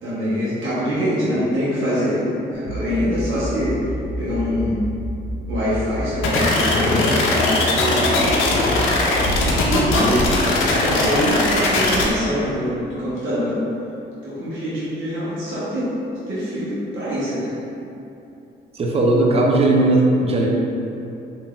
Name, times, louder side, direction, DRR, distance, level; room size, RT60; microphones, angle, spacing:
voice 1, 0.0-3.9 4.2-4.8 5.5-8.4 9.6-13.6 14.2-15.9 16.3-17.5, equal, 80° right, -10 dB, 1.0 m, -24 dB
sound 1, 2.6-9.9, right 1 dB, 45° right, 1.3 m, -31 dB
sound 2, 6.2-12.0, left 2 dB, 90° left, 0.5 m, -19 dB
voice 2, 18.7-20.5, right 2 dB, 30° right, -1 dB, 0.5 m, -17 dB
3.5 x 2.7 x 2.3 m, 2.8 s
cardioid pair, 90°, 20 cm